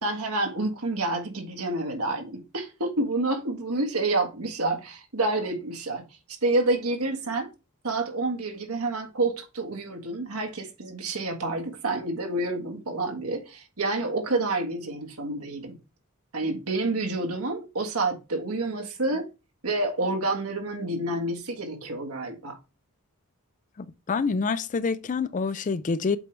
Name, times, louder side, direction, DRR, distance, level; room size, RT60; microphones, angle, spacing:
voice 1, 0.0-6.0 6.4-7.5 7.8-15.8 16.3-19.2 19.6-22.6, right 2 dB, 80° right, 1.6 m, -28 dB
voice 2, 23.8-26.2, left 4 dB, 35° left, 0.4 m, -27 dB
8.0 x 4.6 x 3.3 m
head